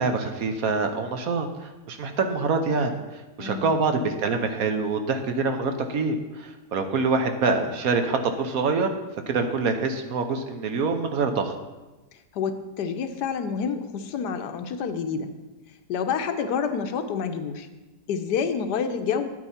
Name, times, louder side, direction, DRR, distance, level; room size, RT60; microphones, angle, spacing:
voice 1, 0.0-8.9 9.3-11.5, right 4 dB, 65° right, 6 dB, 1.2 m, -25 dB
voice 2, 3.4-3.7 12.3-15.3 15.9-17.7 18.1-19.3, left 6 dB, 80° left, 8 dB, 1.3 m, -28 dB
9.4 x 9.1 x 4.3 m, 1.1 s
omnidirectional pair, 1.8 m